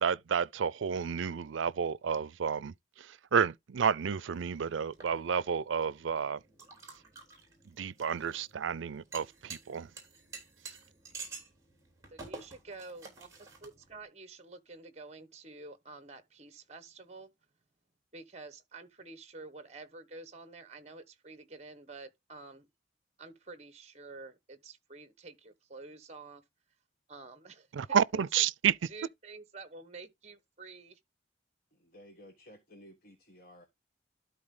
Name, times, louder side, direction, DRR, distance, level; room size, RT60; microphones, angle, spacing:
voice 1, 0.0-6.4 7.7-9.9 27.7-28.7, right 7 dB, 85° right, 0.5 m, -31 dB
sound 1, 4.3-14.0, right 4 dB, 15° right, 3.5 m, -50 dB
voice 2, 12.1-13.3 13.6-17.3 18.1-22.7 23.2-26.4 27.1-28.5 28.9-31.0, right 3 dB, 35° right, 1.2 m, -49 dB
voice 3, 31.7-33.7, equal, 50° left, 1.3 m, -55 dB
12.0 x 4.3 x 3.8 m
head